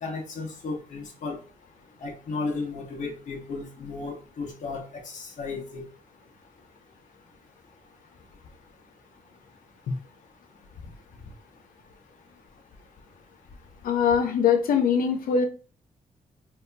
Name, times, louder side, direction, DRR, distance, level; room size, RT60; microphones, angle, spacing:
voice 1, 0.0-1.4 2.0-5.8, left 3 dB, 60° left, -2 dB, 1.2 m, -34 dB
voice 2, 13.8-15.5, left 7 dB, 80° left, 6 dB, 0.7 m, -22 dB
4.0 x 2.8 x 2.3 m, 0.38 s
wide cardioid pair, 150°, 15 cm